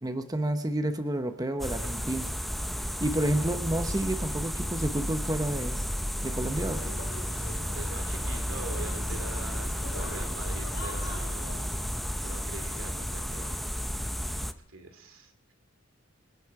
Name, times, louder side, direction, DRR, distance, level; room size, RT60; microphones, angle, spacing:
voice 1, 0.0-2.3 3.0-5.8 6.2-6.9, right 1 dB, 20° right, 8 dB, 0.9 m, -30 dB
sound 1, 1.6-14.5, equal, ahead, 0.6 m, -33 dB
sound 2, 6.4-11.8, left 1 dB, 75° left, 3.5 m, -44 dB
voice 2, 7.7-13.6 14.4-15.5, right 2 dB, 75° right, 7 dB, 2.7 m, -44 dB
26.0 x 11.0 x 4.8 m, 0.68 s
head